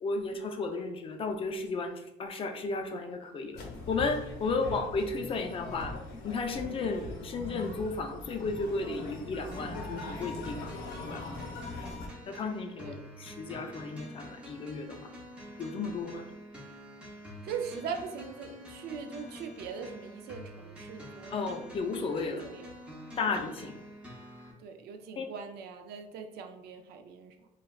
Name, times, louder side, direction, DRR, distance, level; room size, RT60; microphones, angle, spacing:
voice 1, 0.0-3.6 3.9-5.9 6.2-10.7 11.0-11.2 12.3-15.0 15.6-16.2 21.3-22.5 23.2-23.8 25.2-25.3, left 3 dB, 35° left, 5 dB, 0.4 m, -34 dB
sound 1, 3.5-12.1, left 2 dB, 85° left, 0.7 m, -41 dB
voice 2, 4.5-4.8 11.8-12.1 12.8-13.1 17.4-21.6 22.3-22.7 23.2-23.4 24.6-27.5, right 6 dB, 70° right, 5 dB, 0.4 m, -41 dB
sound 2, 9.5-24.5, equal, 5° right, 0.7 m, -47 dB
3.3 x 2.3 x 2.3 m, 0.90 s
cardioid pair, 110°, 17 cm